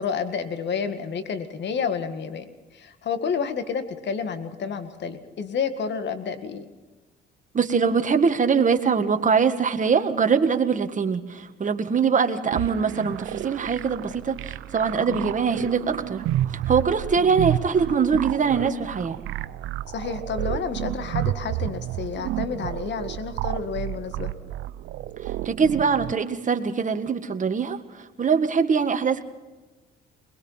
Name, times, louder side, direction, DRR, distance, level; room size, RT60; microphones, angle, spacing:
voice 1, 0.0-6.7 15.1-15.3 19.9-24.3, left 6 dB, 65° left, 10 dB, 1.9 m, -30 dB
voice 2, 7.5-16.2 16.5-19.2 25.2-29.2, right 6 dB, 40° right, 7 dB, 1.8 m, -23 dB
sound 1, 12.5-26.1, right 13 dB, 85° right, 0.6 m, -31 dB
22.0 x 21.5 x 5.7 m, 1.2 s
cardioid pair, 90°, 20 cm